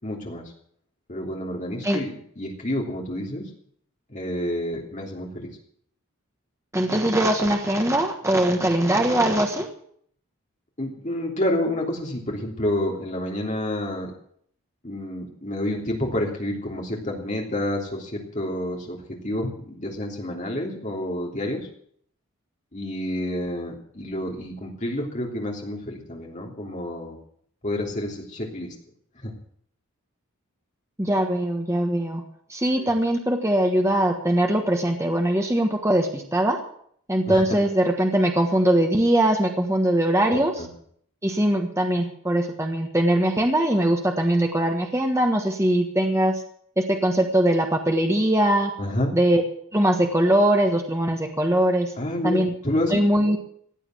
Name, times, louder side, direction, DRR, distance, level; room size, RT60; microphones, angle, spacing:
voice 1, 0.0-0.4 1.1-3.5 4.1-5.5 10.8-14.1 14.8-21.6 22.7-27.2 27.6-28.7 29.2-29.3 32.8-32.9 37.3-37.4 40.3-40.7 48.8-49.1 52.0-53.0, left 1 dB, 35° left, -1 dB, 3.2 m, -29 dB
voice 2, 6.7-9.7 31.0-32.2 32.5-36.6 37.1-40.5 41.2-46.3 46.8-48.7 49.1-49.4 49.7-51.9 52.2-52.5 52.9-53.4, right 1 dB, 15° right, 3 dB, 1.4 m, -21 dB
16.0 x 9.1 x 7.7 m, 0.63 s
head